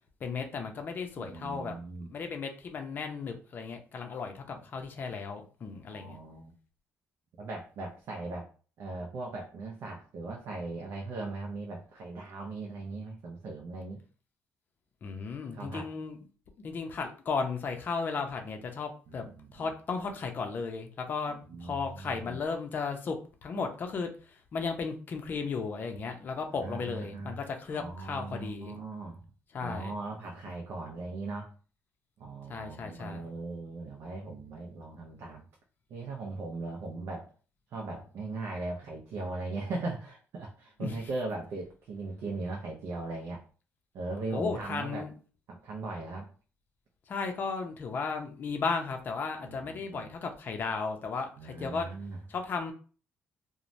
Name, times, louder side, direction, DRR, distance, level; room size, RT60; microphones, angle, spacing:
voice 1, 0.2-6.2 15.0-16.2 16.6-19.3 19.5-28.8 29.5-29.9 32.5-33.2 40.8-41.0 44.3-45.1 47.1-51.9 52.3-52.7, left 4 dB, 40° left, 5 dB, 0.5 m, -35 dB
voice 2, 1.2-2.1 5.9-6.5 7.4-8.5 8.8-14.0 15.5-15.9 19.1-19.7 21.3-22.4 26.6-27.4 27.7-29.3 29.6-31.5 32.2-35.4 35.9-37.3 37.7-43.4 43.9-45.1 45.5-46.3 49.4-50.1 51.4-52.2, right 3 dB, 65° right, -1 dB, 0.5 m, -39 dB
3.1 x 2.1 x 2.6 m, 0.39 s
cardioid pair, 150°, 5 cm